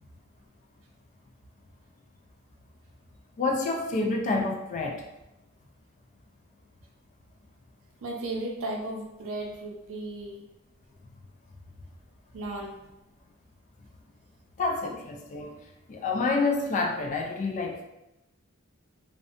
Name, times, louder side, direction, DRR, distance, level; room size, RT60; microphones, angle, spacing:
voice 1, 3.4-5.1 14.6-15.6 15.9-17.8, left 3 dB, 35° left, 1 dB, 0.3 m, -28 dB
voice 2, 8.0-10.4 12.3-12.8, right 2 dB, 65° right, 0 dB, 0.5 m, -35 dB
2.6 x 2.1 x 2.4 m, 0.93 s
head